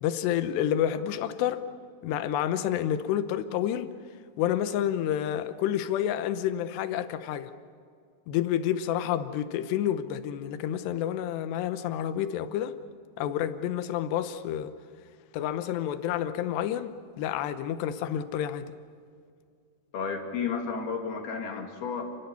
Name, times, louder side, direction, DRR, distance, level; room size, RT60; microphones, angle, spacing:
voice 1, 0.0-1.6 2.0-3.9 4.4-7.5 8.3-12.7 13.2-14.7 15.3-16.9 17.2-18.7, left 10 dB, 85° left, 3.1 m, -29 dB
voice 2, 19.9-22.0, left 5 dB, 65° left, 4.2 m, -32 dB
30.0 x 21.5 x 7.0 m
omnidirectional pair, 4.8 m